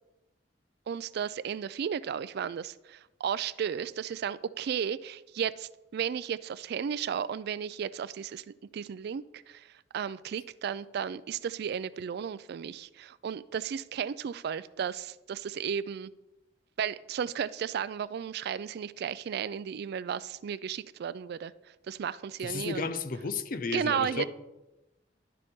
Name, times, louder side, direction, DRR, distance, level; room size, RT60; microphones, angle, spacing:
voice 1, 0.9-9.7 9.9-16.1 16.8-21.5 21.9-22.9 23.7-24.2, right 7 dB, 60° right, 0.3 m, -34 dB
voice 2, 22.4-24.3, left 4 dB, 50° left, 0.6 m, -33 dB
11.5 x 6.7 x 3.6 m
head